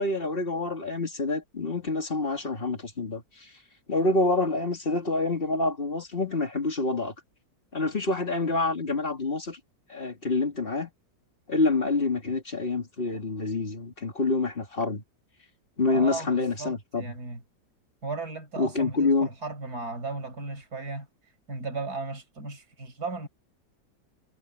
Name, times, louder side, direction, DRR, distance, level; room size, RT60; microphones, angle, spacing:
voice 1, 0.0-3.2 3.9-7.1 7.7-9.6 9.9-10.9 11.5-15.0 15.8-17.1 18.6-19.3, left 3 dB, 30° left, 2.5 m, -27 dB
voice 2, 15.9-17.4 18.0-21.1 21.5-23.3, right 3 dB, 55° right, 5.8 m, -36 dB
omnidirectional pair, 2.0 m